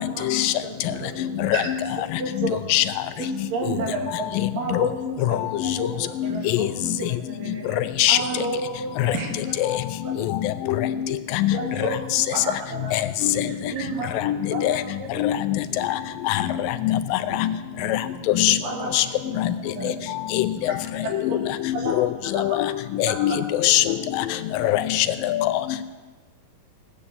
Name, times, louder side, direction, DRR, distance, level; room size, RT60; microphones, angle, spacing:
voice 1, 0.0-1.1 1.5-2.6 3.2-5.9 6.2-7.8 8.1-9.8 10.0-10.2 11.5-12.9 13.5-14.2 14.5-15.1 18.2-19.1 19.3-19.5 19.8-19.9 20.7-20.8 21.7-21.9 22.3-22.4 23.1-23.2 24.6-24.7, right 3 dB, 75° right, 0 dB, 3.6 m, -32 dB
voice 2, 0.8-1.5 3.2-3.3 5.9-6.5 7.4-7.8 8.3-8.4 10.2-10.3 12.4-12.9 13.2-13.5 13.8-13.9 15.1-15.3 15.7-16.1 17.2-17.4 17.8-17.9 19.7-19.9 20.3-21.1 25.3-25.5, right 1 dB, 55° right, -6 dB, 5.9 m, -42 dB
voice 3, 12.9-13.5 14.2-14.8 15.2-15.4 16.3-16.4 18.4-18.6 18.9-19.0 20.3-20.5 21.7-22.1 22.6-22.7 23.0-23.4 23.6-24.3 24.6-25.4, left 13 dB, 80° left, 10 dB, 2.2 m, -21 dB
17.0 x 8.6 x 7.1 m, 1.3 s
omnidirectional pair, 4.0 m